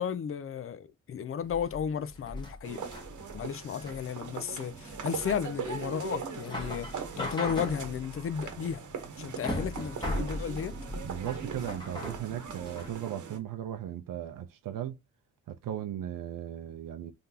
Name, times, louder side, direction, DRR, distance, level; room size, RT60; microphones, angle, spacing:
voice 1, 0.0-2.9 3.3-8.8 9.2-10.8, left 7 dB, 45° left, 0.4 m, -34 dB
sound 1, 1.4-13.0, left 1 dB, 15° left, 1.4 m, -39 dB
sound 2, 2.6-13.4, right 6 dB, 65° right, 1.0 m, -41 dB
voice 2, 10.9-15.0 15.5-17.1, right 11 dB, 85° right, 0.6 m, -37 dB
3.9 x 3.4 x 2.7 m
wide cardioid pair, 145°, 33 cm